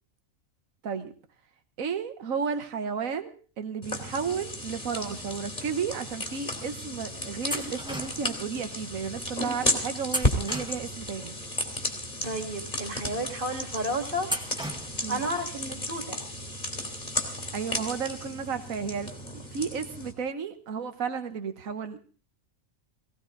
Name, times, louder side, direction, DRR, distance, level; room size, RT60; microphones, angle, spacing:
voice 1, 1.8-11.3 15.0-15.2 17.5-22.0, right 6 dB, 80° right, 8 dB, 1.6 m, -33 dB
sound 1, 3.8-20.1, left 1 dB, 30° left, 2.9 m, -34 dB
sound 2, 7.5-8.4 10.1-11.2 14.2-15.2, right 1 dB, 5° right, 1.7 m, -35 dB
voice 2, 12.2-14.3 15.0-16.2, right 1 dB, 40° right, 3 dB, 2.6 m, -32 dB
18.5 x 17.5 x 3.9 m, 0.39 s
omnidirectional pair, 1.4 m